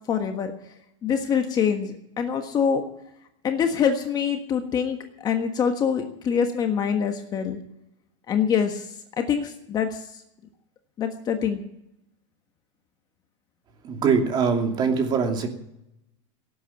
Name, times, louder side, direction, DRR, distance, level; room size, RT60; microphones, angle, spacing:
voice 1, 0.1-0.5 1.0-2.8 3.4-5.0 5.2-7.6 8.3-8.8 9.2-10.0 11.0-11.6, left 7 dB, 25° left, 5 dB, 1.5 m, -24 dB
voice 2, 13.8-15.5, right 5 dB, 30° right, 3 dB, 2.7 m, -22 dB
17.5 x 8.6 x 9.2 m, 0.82 s
supercardioid pair, 150°, 16 cm